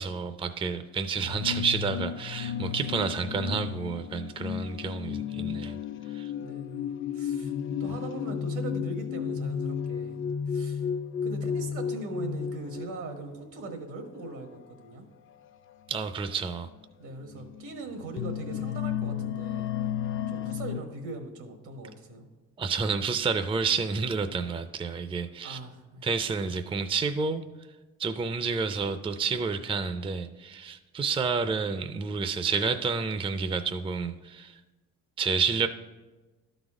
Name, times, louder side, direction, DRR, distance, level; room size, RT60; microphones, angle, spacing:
voice 1, 0.0-5.8 6.1-6.3 15.9-16.7 22.6-25.6 26.0-27.4 28.0-34.6 35.2-35.7, right 5 dB, 20° right, 9 dB, 0.4 m, -29 dB
sound 1, 1.2-13.4 14.3-14.6 15.7-15.8 16.4-16.6 17.3-20.8, left 8 dB, 45° left, 0.4 m, -33 dB
voice 2, 6.4-7.5 7.8-10.2 10.5-10.9 11.2-15.1 17.0-19.7 20.3-22.3 25.4-26.1, right 2 dB, 80° right, 5 dB, 1.4 m, -40 dB
12.0 x 4.0 x 4.9 m, 1.2 s
cardioid pair, 90°, 30 cm